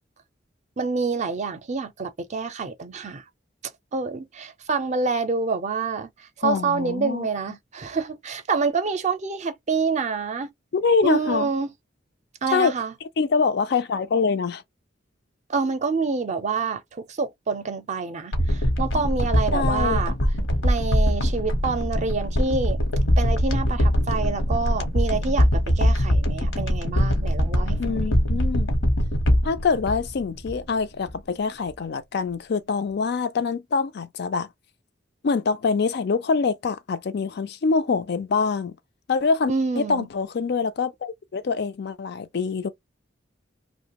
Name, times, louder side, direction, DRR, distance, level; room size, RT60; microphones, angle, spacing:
voice 1, 0.8-3.2 3.9-6.1 6.4-10.5 11.0-11.7 12.4-12.9 15.5-20.1 20.6-22.8 23.2-28.1 39.5-40.1, right 4 dB, 40° right, 0.5 m, -27 dB
voice 2, 6.4-7.3 10.7-11.5 12.5-12.7 13.2-14.6 19.5-20.0 27.8-28.7 29.4-34.5 35.2-38.7 39.1-42.7, left 5 dB, 60° left, 0.4 m, -25 dB
sound 1, 18.3-30.8 31.1-31.2, equal, 80° left, 1.0 m, -22 dB
2.8 x 2.1 x 2.8 m
head